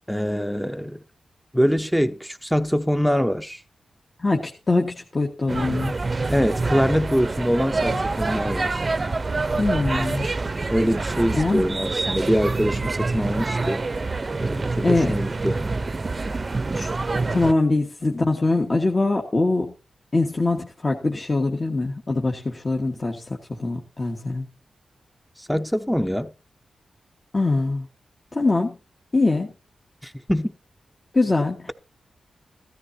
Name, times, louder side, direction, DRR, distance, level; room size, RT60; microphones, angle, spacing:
voice 1, 0.1-1.0 1.5-3.6 6.3-8.8 10.7-13.8 14.4-15.7 25.4-26.3 30.0-30.5, equal, ahead, 0.8 m, -24 dB
voice 2, 4.2-6.0 9.6-10.3 11.4-11.6 14.8-15.2 16.7-16.9 17.3-19.7 20.1-23.2 23.5-24.4 27.3-27.8 28.3-28.8 29.1-29.5 31.1-31.7, left 2 dB, 35° left, 1.6 m, -23 dB
sound 1, 5.5-17.5, right 3 dB, 40° right, 0.7 m, -26 dB
16.0 x 13.5 x 2.8 m
cardioid pair, 75°, 0 cm